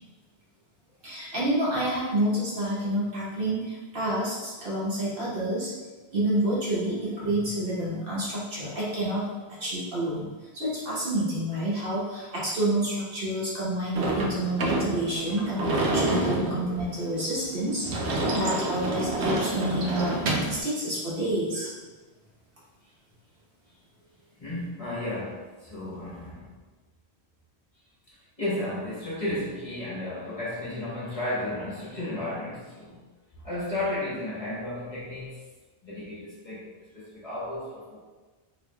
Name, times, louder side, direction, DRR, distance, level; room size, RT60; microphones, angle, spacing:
voice 1, 1.0-5.7 6.1-15.7 15.9-17.9 18.3-21.7, right 1 dB, 60° right, -7 dB, 1.2 m, -29 dB
Sliding door / Slam, 14.0-20.6, right 2 dB, 85° right, 0.9 m, -28 dB
voice 2, 24.4-26.5 28.4-33.0 33.4-35.4 35.8-38.0, left 1 dB, 35° left, -8 dB, 1.2 m, -33 dB
4.7 x 2.9 x 2.2 m, 1.3 s
omnidirectional pair, 1.1 m